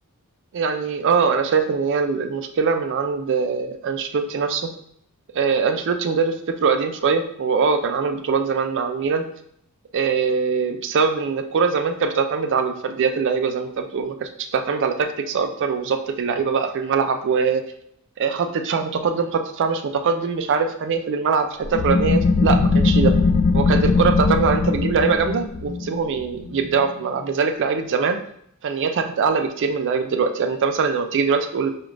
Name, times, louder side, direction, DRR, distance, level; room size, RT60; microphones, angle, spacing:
voice 1, 0.5-4.7 5.3-9.3 9.9-17.6 18.2-23.1 23.5-28.2 28.6-31.7, right 5 dB, 55° right, 6 dB, 0.4 m, -22 dB
sound 1, 21.6-27.0, left 3 dB, 45° left, 0.3 m, -20 dB
5.0 x 2.4 x 3.1 m, 0.70 s
head